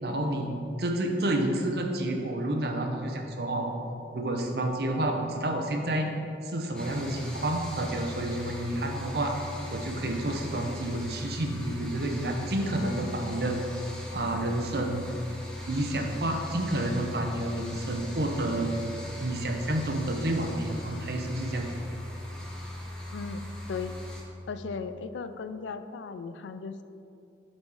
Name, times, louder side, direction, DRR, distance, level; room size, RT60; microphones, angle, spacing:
voice 1, 0.0-3.7 4.1-6.1 6.4-9.3 9.7-13.6 14.1-15.1 15.7-18.7 19.2-21.7, right 1 dB, 60° right, 2 dB, 0.8 m, -29 dB
sound 1, 6.7-24.2, left 1 dB, 5° left, 0.8 m, -39 dB
voice 2, 23.1-23.9 24.5-26.8, left 5 dB, 90° left, 10 dB, 0.4 m, -37 dB
8.4 x 4.2 x 4.8 m, 2.5 s
head